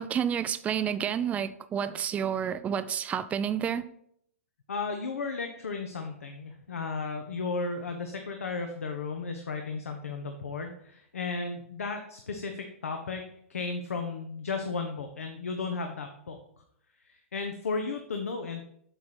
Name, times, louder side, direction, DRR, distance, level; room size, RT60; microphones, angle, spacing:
voice 1, 0.0-3.8, right 8 dB, 20° right, 0.4 m, -30 dB
voice 2, 4.7-13.2 13.5-16.4 17.0-18.6, left 4 dB, 80° left, 0.8 m, -34 dB
7.9 x 3.3 x 5.8 m
hypercardioid pair, 115°, 8 cm